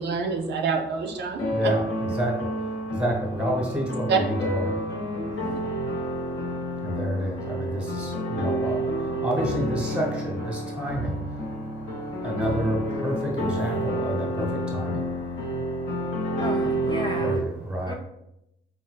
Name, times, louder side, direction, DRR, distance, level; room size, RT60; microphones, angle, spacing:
voice 1, 0.0-1.7 4.1-4.2 5.4-5.6, right 5 dB, 60° right, 4 dB, 0.4 m, -27 dB
sound 1, 1.4-17.4, equal, 70° left, 0.8 m, -29 dB
voice 2, 1.5-16.4 17.2-17.9, equal, 5° right, -1 dB, 1.0 m, -31 dB
voice 3, 16.4-17.4 17.9-18.0, left 1 dB, 20° left, 0 dB, 0.4 m, -34 dB
3.8 x 2.2 x 2.3 m, 0.85 s
cardioid pair, 90°, 20 cm